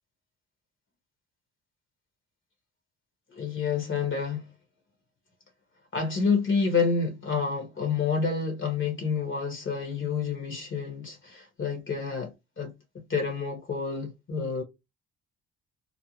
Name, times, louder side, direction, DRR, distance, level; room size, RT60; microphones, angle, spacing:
voice 1, 3.3-4.5 5.9-12.7 13.1-14.6, left 5 dB, 40° left, 1.1 m, -28 dB
2.6 x 2.0 x 2.9 m
cardioid pair, 90°, 30 cm